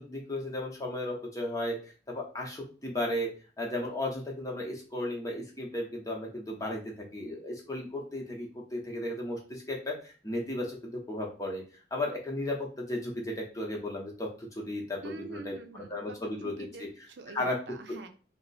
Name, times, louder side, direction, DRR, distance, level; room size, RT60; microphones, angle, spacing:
voice 1, 0.0-11.6 11.9-16.9 17.3-17.6, left 1 dB, 20° left, -1 dB, 0.8 m, -35 dB
voice 2, 15.0-18.1, right 4 dB, 80° right, 6 dB, 0.5 m, -45 dB
2.8 x 2.0 x 4.0 m, 0.37 s
head